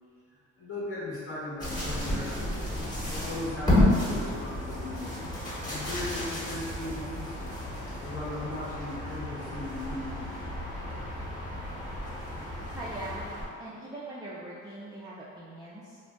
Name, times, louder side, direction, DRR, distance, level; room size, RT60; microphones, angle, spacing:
voice 1, 0.6-2.7 3.0-5.1 5.4-7.5 8.0-10.3, left 1 dB, 50° left, -8 dB, 1.0 m, -38 dB
sound 1, 1.6-13.5, left 1 dB, 15° left, 1.0 m, -31 dB
sound 2, 4.1-11.3, left 1 dB, 85° left, 1.0 m, -46 dB
voice 2, 12.7-13.2 13.6-16.0, right 2 dB, 15° right, -8 dB, 0.3 m, -41 dB
2.6 x 2.1 x 3.3 m, 2.1 s
cardioid pair, 90°, 30 cm